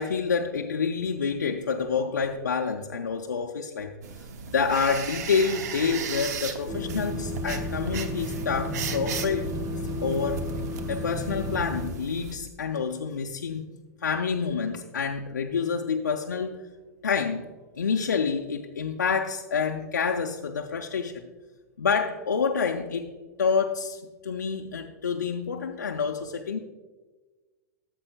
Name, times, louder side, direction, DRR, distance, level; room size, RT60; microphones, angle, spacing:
voice 1, 0.0-3.9 4.5-9.5 10.0-10.5 10.9-13.7 14.0-16.7 17.0-21.2 21.8-26.6, left 5 dB, 90° left, 2 dB, 0.5 m, -28 dB
sound 1, 4.0-12.4, right 6 dB, 70° right, 0.8 m, -37 dB
sound 2, 6.7-11.9, left 1 dB, 40° right, 1.3 m, -32 dB
13.5 x 7.4 x 2.2 m, 1.3 s
hypercardioid pair, 95°, 9 cm